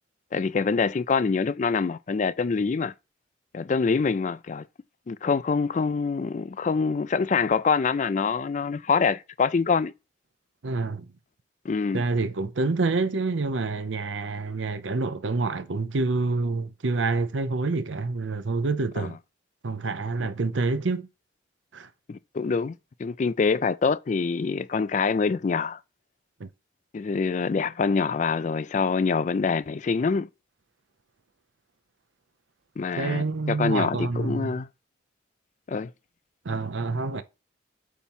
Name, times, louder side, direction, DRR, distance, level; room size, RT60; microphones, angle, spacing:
voice 1, 0.3-2.9 3.5-4.7 5.1-9.9 11.6-12.0 19.0-19.1 22.1-22.7 23.0-25.8 26.9-30.3 32.8-34.7 35.7-35.9, left 5 dB, 40° left, 0.3 m, -25 dB
voice 2, 10.6-11.1 11.9-19.1 19.6-21.1 21.7-21.9 26.4-26.5 33.0-34.6 36.4-37.2, right 3 dB, 80° right, 0.7 m, -27 dB
8.3 x 3.0 x 5.5 m
head